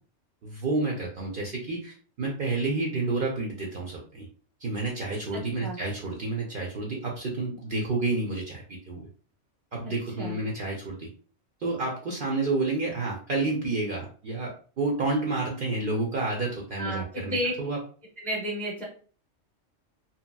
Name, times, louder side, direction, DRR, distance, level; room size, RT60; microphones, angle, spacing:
voice 1, 0.4-4.3 4.6-9.1 9.7-11.1 11.6-17.8, right 3 dB, 55° right, -1 dB, 0.7 m, -30 dB
voice 2, 5.3-5.8 10.2-10.4 16.8-17.5 18.2-18.8, right 1 dB, ahead, -2 dB, 0.6 m, -32 dB
2.9 x 2.8 x 2.2 m, 0.41 s
omnidirectional pair, 1.3 m